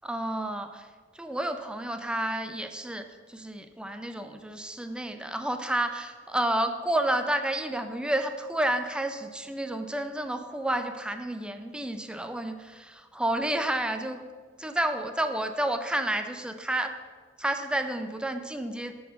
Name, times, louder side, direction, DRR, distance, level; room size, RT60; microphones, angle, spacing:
voice 1, 0.0-0.9 1.1-14.2 14.6-16.9 17.4-18.9, right 1 dB, 5° right, 7 dB, 0.4 m, -30 dB
6.6 x 4.4 x 6.3 m, 1.5 s
head